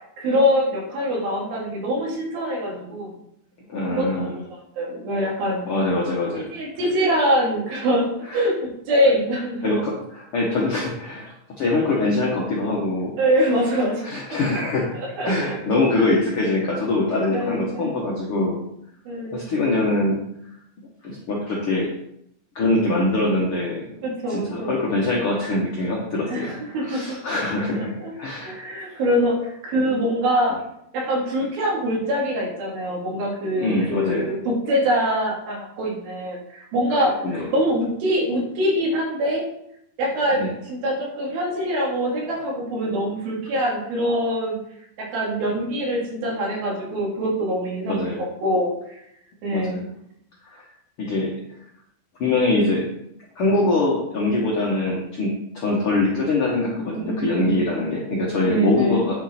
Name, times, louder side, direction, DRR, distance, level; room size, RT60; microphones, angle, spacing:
voice 1, 0.2-3.1 3.9-4.4 4.8-5.6 6.3-9.8 13.2-14.1 15.2-15.6 17.3-18.0 19.1-19.4 24.0-24.8 26.3-27.2 27.7-28.1 28.4-30.6 30.9-37.2 37.5-39.5 40.0-44.6 45.0-48.0 48.4-49.0 49.4-49.8 56.7-57.9 58.5-59.1, equal, 75° right, -3 dB, 4.1 m, -24 dB
voice 2, 3.7-4.3 5.7-6.5 8.3-8.5 9.6-13.2 14.0-15.0 15.2-18.6 19.3-20.2 21.0-21.9 22.5-23.9 24.3-28.6 33.6-34.3 37.2-37.5 40.3-40.5 47.9-48.2 49.5-49.8 50.4-50.6 51.0-51.3 52.2-52.8 53.3-59.2, left 2 dB, 65° left, -3 dB, 1.4 m, -23 dB
9.3 x 6.3 x 4.3 m, 0.75 s
omnidirectional pair, 4.3 m